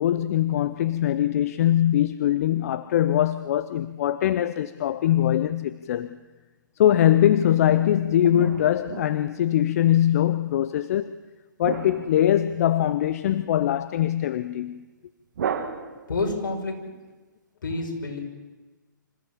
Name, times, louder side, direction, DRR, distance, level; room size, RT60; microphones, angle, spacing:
voice 1, 0.0-6.2 6.8-11.1 11.6-14.8, left 11 dB, 45° left, 0.7 m, -22 dB
sound 1, 7.7-9.7 11.6-13.0 15.3-16.4, right 7 dB, 60° right, 2.0 m, -34 dB
voice 2, 16.1-16.8 17.6-18.2, left 3 dB, 70° left, 5.7 m, -28 dB
26.5 x 15.0 x 7.4 m
hypercardioid pair, 135°, 11 cm